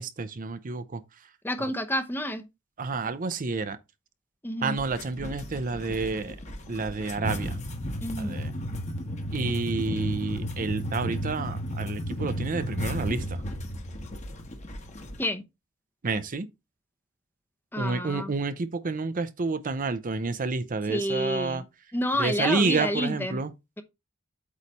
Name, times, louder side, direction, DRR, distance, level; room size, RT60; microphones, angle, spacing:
voice 1, 0.0-1.3 1.6-1.7 2.8-3.8 4.6-6.4 6.7-7.6 8.2-8.5 9.3-13.4 16.0-16.5 17.7-21.6 22.2-23.5, right 4 dB, 40° right, 0.6 m, -29 dB
voice 2, 1.4-2.4 4.4-4.8 8.0-8.4 15.2-15.4 17.7-18.3 20.9-21.6 21.9-23.4, left 1 dB, 10° left, 0.7 m, -29 dB
sound 1, 4.8-15.2, equal, 35° left, 1.3 m, -34 dB
8.3 x 3.2 x 5.3 m
head